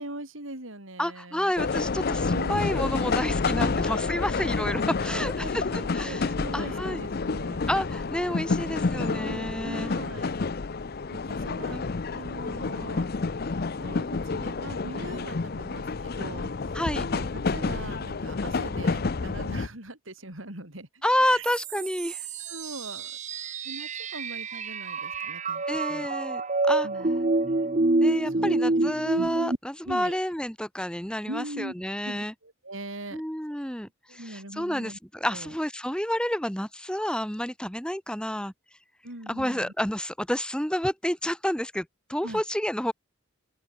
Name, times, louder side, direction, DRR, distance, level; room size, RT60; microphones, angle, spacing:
voice 1, 0.0-1.5 2.3-3.1 5.1-7.6 8.9-10.4 11.1-13.1 13.8-16.5 16.9-21.4 21.7-21.9 22.5-23.2 23.6-26.2 26.8-27.1 28.3-28.9 29.2-29.3 29.8-30.2 31.3-33.2 34.1-35.0 35.2-35.5 39.0-39.7 42.2-42.4, right 1 dB, 80° right, 6.2 m, -41 dB
voice 2, 1.0-5.6 5.9-7.1 7.7-9.9 11.7-12.0 16.7-17.0 21.0-22.2 25.7-26.4 26.7-26.9 28.0-32.3 33.1-38.5 39.3-42.9, left 1 dB, 5° left, 3.9 m, -30 dB
sound 1, 1.6-19.7, left 4 dB, 50° left, 0.6 m, -29 dB
sound 2, 21.4-29.6, right 2 dB, 35° right, 1.1 m, -27 dB
open air
head